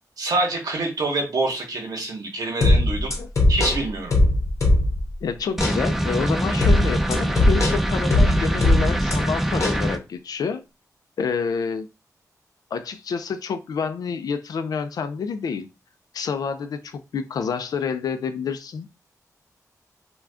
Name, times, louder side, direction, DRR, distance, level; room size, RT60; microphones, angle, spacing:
voice 1, 0.2-3.1 3.5-4.2, right 2 dB, 85° right, 2 dB, 0.9 m, -26 dB
sound 1, 2.6-5.1 5.6-5.8 6.6-9.2 9.6-9.8, left 1 dB, 50° left, 0.8 m, -19 dB
voice 2, 5.2-10.6 11.2-11.9 12.7-15.7 16.1-18.9, left 6 dB, 85° left, 9 dB, 0.3 m, -28 dB
sound 2, 5.6-10.0, right 1 dB, 5° right, 0.4 m, -24 dB
2.5 x 2.2 x 3.4 m, 0.27 s
wide cardioid pair, 115°, 6 cm